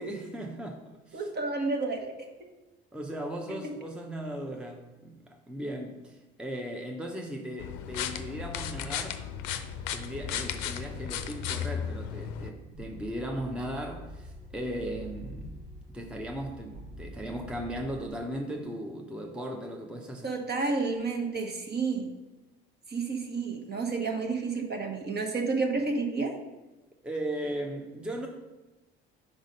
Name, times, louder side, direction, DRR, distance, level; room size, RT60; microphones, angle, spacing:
voice 1, 0.0-1.3 2.9-9.2 9.9-15.5 15.9-20.4 27.0-28.3, right 1 dB, 5° right, 2 dB, 0.8 m, -37 dB
voice 2, 1.1-2.1 20.2-22.1 22.9-26.3, right 4 dB, 35° right, 3 dB, 1.3 m, -30 dB
sound 1, 7.6-12.5, left 8 dB, 65° left, 0.6 m, -35 dB
sound 2, 12.7-18.1, equal, 80° right, 2.1 m, -45 dB
5.2 x 3.9 x 5.3 m, 1.1 s
hypercardioid pair, 60°, 30 cm